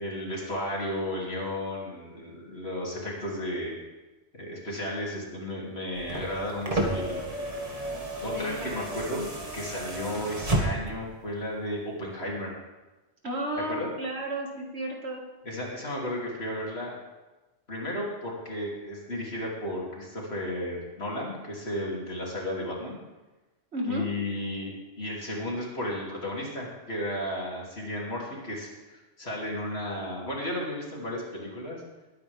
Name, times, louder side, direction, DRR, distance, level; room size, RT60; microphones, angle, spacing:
voice 1, 0.0-3.8 4.3-7.2 8.2-9.2 9.5-12.5 13.7-13.9 15.4-17.0 17.7-23.0 23.9-31.8, left 1 dB, 65° left, -3 dB, 3.2 m, -34 dB
sound 1, 5.9-11.1 12.3-12.4, right 1 dB, 35° right, 1.9 m, -32 dB
voice 2, 8.3-8.8 9.1-9.2 13.2-15.2 23.7-24.0, equal, 75° right, 0 dB, 2.3 m, -33 dB
20.5 x 9.3 x 3.5 m, 1.1 s
omnidirectional pair, 1.1 m